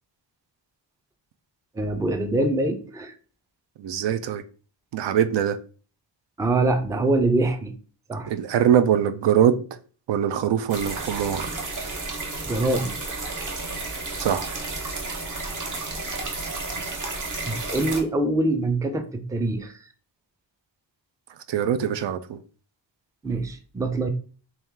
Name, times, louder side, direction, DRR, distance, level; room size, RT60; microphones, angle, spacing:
voice 1, 1.8-3.2 6.4-7.7 8.1-8.3 12.5-12.9 17.3-19.8 23.2-24.1, right 2 dB, 10° right, 0.3 m, -24 dB
voice 2, 3.8-4.4 4.9-5.6 8.3-9.6 10.1-11.5 14.2-14.5 21.5-22.4, right 9 dB, 75° right, 0.5 m, -22 dB
sound 1, 10.7-18.0, right 3 dB, 45° right, 0.9 m, -32 dB
3.1 x 2.9 x 3.6 m
wide cardioid pair, 130°, 44 cm